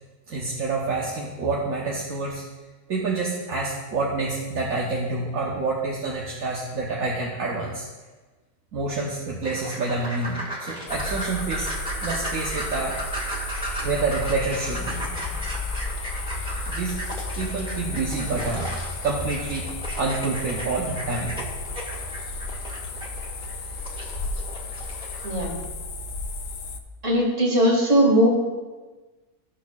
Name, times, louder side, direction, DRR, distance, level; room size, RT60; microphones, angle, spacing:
voice 1, 0.3-2.4 2.9-7.9 8.7-11.7 12.0-12.9 13.8-15.1 16.7-16.9 17.4-18.8 19.0-19.7 20.0-21.4, right 3 dB, 75° right, -3 dB, 1.4 m, -27 dB
sound 1, 9.4-25.5, right 1 dB, 5° right, 1.6 m, -36 dB
sound 2, 10.9-26.8, left 2 dB, 55° left, 0.6 m, -33 dB
voice 2, 27.0-28.3, equal, 55° right, -3 dB, 2.3 m, -19 dB
14.0 x 6.3 x 2.4 m, 1.3 s
omnidirectional pair, 1.5 m